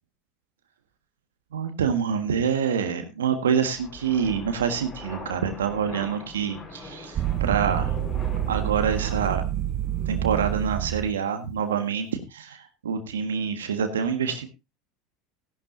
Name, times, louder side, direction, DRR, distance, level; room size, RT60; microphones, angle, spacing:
voice 1, 1.5-7.9 8.5-9.5 10.0-14.5, right 7 dB, 80° right, 7 dB, 1.6 m, -26 dB
sound 1, 3.7-9.3, left 3 dB, 35° left, 5.7 m, -41 dB
sound 2, 7.1-11.2, right 12 dB, 45° right, 0.8 m, -27 dB
16.0 x 11.5 x 2.6 m, 0.24 s
hypercardioid pair, 75°, 0 cm